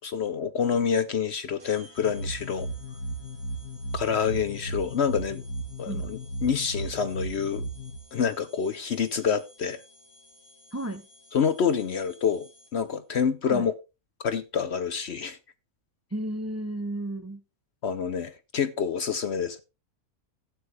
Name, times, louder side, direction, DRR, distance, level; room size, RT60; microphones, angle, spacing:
voice 1, 0.0-2.7 3.9-5.4 5.8-7.6 8.1-9.8 11.3-13.7 14.2-15.4 17.8-19.6, left 7 dB, 55° left, 0.8 m, -27 dB
sound 1, 1.6-13.0, left 1 dB, 60° right, 3.6 m, -55 dB
sound 2, 2.0-8.0, right 1 dB, 80° left, 1.8 m, -35 dB
voice 2, 10.7-11.0 13.4-13.6 16.1-17.4, right 1 dB, 15° right, 0.5 m, -33 dB
13.0 x 8.7 x 3.4 m
omnidirectional pair, 1.6 m